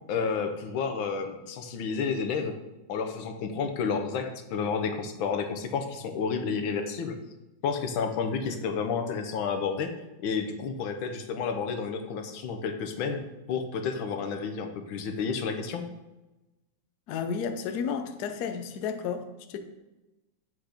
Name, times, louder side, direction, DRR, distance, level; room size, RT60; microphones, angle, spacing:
voice 1, 0.1-2.5 2.9-7.2 7.6-9.9 10.2-13.2 13.5-15.8, left 5 dB, 85° left, 7 dB, 1.6 m, -30 dB
voice 2, 17.1-19.6, left 6 dB, 65° left, 7 dB, 1.1 m, -32 dB
8.1 x 4.4 x 5.0 m, 1.0 s
omnidirectional pair, 2.1 m